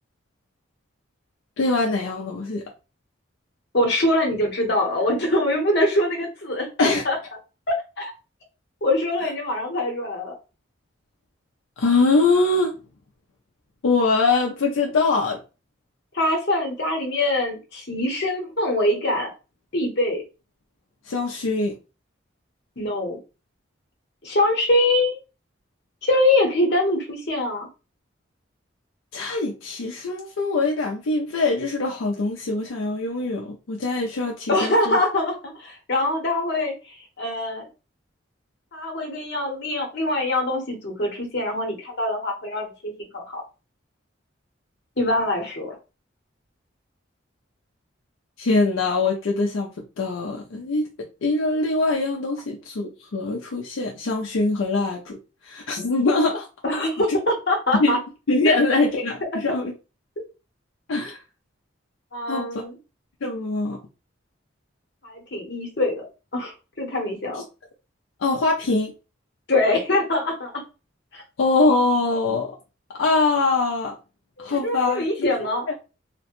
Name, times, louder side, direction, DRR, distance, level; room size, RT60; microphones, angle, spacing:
voice 1, 1.6-2.6 6.8-7.0 11.8-12.7 13.8-15.4 21.1-21.7 29.1-35.0 48.4-49.7 50.0-55.2 55.4-56.5 57.8-58.0 58.3-59.7 60.9-61.2 62.3-62.6 63.2-63.8 68.2-68.9 71.4-72.6 72.9-74.0 74.4-75.3, left 3 dB, 85° left, 0.5 m, -23 dB
voice 2, 3.7-7.2 7.7-8.1 8.8-10.3 16.1-19.3 19.7-20.2 22.8-23.2 24.2-25.2 26.0-27.7 34.5-37.7 38.7-43.4 45.0-45.8 56.6-58.0 58.4-58.6 60.2-60.3 62.1-62.8 65.0-66.0 66.3-67.4 69.5-70.5 71.1-71.2 74.4-75.7, left 1 dB, 55° left, 0.9 m, -23 dB
2.9 x 2.1 x 2.9 m
head